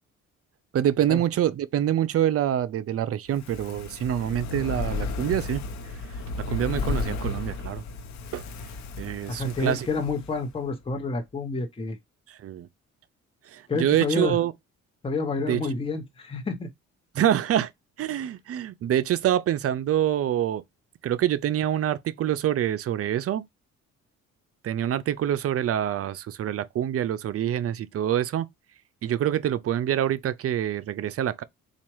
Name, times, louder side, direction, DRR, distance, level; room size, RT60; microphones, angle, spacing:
voice 1, 0.7-5.6 6.5-7.8 8.3-8.4 9.0-9.9 12.3-12.7 13.5-14.5 15.5-15.6 17.1-17.7 18.0-20.6 21.0-23.5 24.6-28.5 29.0-31.4, right 11 dB, 50° right, 0.5 m, -26 dB
Fire, 3.3-10.6 10.9-11.0, left 3 dB, 65° left, 0.8 m, -33 dB
voice 2, 9.3-12.0 13.7-14.4 15.0-16.7, left 3 dB, 20° left, 0.9 m, -29 dB
4.3 x 2.3 x 3.0 m
cardioid pair, 90°, 30 cm